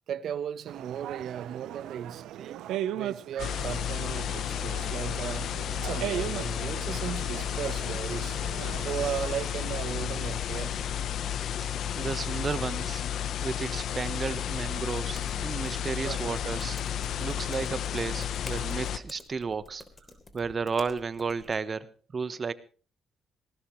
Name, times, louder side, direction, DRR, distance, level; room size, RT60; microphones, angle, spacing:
voice 1, 0.1-2.6 2.9-5.5 5.8-8.4 8.8-10.8 16.0-16.3, right 9 dB, 65° right, 1.0 m, -36 dB
sound 1, 0.7-9.2, right 12 dB, 85° right, 0.8 m, -38 dB
sound 2, 3.4-19.0, left 9 dB, 70° left, 0.9 m, -32 dB
voice 2, 11.9-13.0 13.4-16.8 17.2-19.8 20.3-22.5, right 5 dB, 40° right, 1.1 m, -33 dB
sound 3, 14.3-21.5, left 2 dB, 20° left, 3.5 m, -51 dB
19.5 x 18.5 x 3.2 m
cardioid pair, 90°, 0 cm